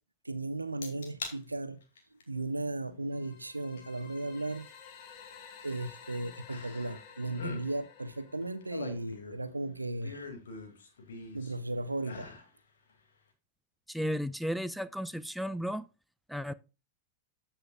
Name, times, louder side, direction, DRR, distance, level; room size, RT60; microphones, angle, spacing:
voice 1, 0.2-1.8 2.3-4.7 5.6-10.3 11.3-12.3, right 2 dB, 80° right, 0.7 m, -36 dB
sound 1, 0.8-1.4 1.8-2.2 3.8-3.9 6.5-7.0 7.3-7.6 8.4-9.5 10.0-11.5 12.0-12.5 12.9-13.0, left 4 dB, 65° left, 2.2 m, -43 dB
sound 2, 3.1-9.1, left 7 dB, 45° left, 1.9 m, -52 dB
voice 2, 13.9-15.9 16.3-16.5, equal, ahead, 0.4 m, -34 dB
14.0 x 5.7 x 2.3 m
figure-of-eight pair, 90°, 0 cm